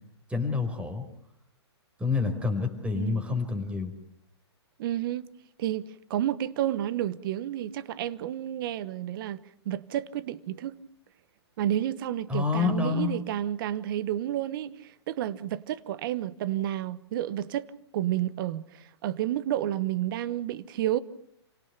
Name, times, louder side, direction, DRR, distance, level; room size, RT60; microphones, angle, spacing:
voice 1, 0.3-1.1 2.0-3.9 12.3-13.1, left 4 dB, 10° right, 4.7 m, -28 dB
voice 2, 4.8-5.2 5.6-10.8 11.6-21.0, right 12 dB, 50° right, 1.2 m, -31 dB
29.5 x 18.0 x 6.9 m
hypercardioid pair, 125°, 14 cm